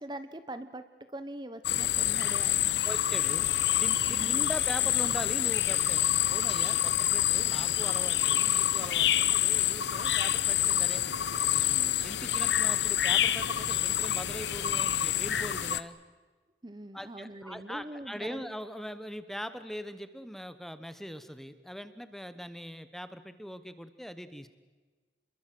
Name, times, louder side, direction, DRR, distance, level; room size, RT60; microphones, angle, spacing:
voice 1, 0.0-2.9 4.1-4.5 16.6-18.5, right 1 dB, 25° right, 11 dB, 0.9 m, -43 dB
sound 1, 1.6-15.8, left 11 dB, 70° left, 0.9 m, -27 dB
voice 2, 2.8-3.5 3.8-11.0 11.3-16.0 16.9-24.5, equal, ahead, 12 dB, 1.0 m, -41 dB
29.0 x 22.0 x 7.7 m, 1.3 s
head